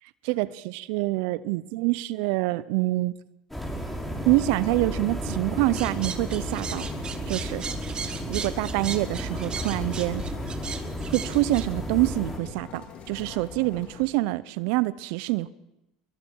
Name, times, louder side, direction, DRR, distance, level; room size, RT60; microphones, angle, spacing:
voice 1, 0.2-3.1 4.3-6.9 7.3-7.6 8.3-10.2 11.1-15.5, right 19 dB, 70° right, 18 dB, 0.6 m, -26 dB
sound 1, 3.5-12.4, equal, 5° left, 6.0 m, -33 dB
sound 2, 5.7-11.6, right 6 dB, 35° right, 1.8 m, -36 dB
sound 3, 5.9-14.0, left 5 dB, 45° left, 4.0 m, -44 dB
25.0 x 22.5 x 4.6 m, 0.88 s
hypercardioid pair, 80°, 3 cm